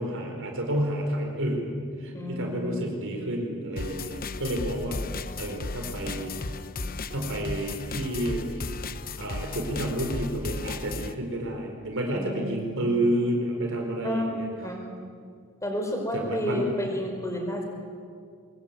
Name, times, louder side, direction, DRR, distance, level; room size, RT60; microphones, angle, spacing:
voice 1, 0.0-1.7 2.0-5.0 5.4-6.3 7.1-8.7 9.2-14.5 16.1-16.7, right 1 dB, 60° right, 2 dB, 4.8 m, -30 dB
voice 2, 2.1-2.9 12.1-12.8 14.0-14.3 14.6-14.8 15.6-17.7, equal, 15° left, 2 dB, 5.4 m, -31 dB
sound 1, 3.8-11.1, left 3 dB, 40° left, 0.9 m, -35 dB
24.0 x 22.5 x 9.4 m, 2.1 s
head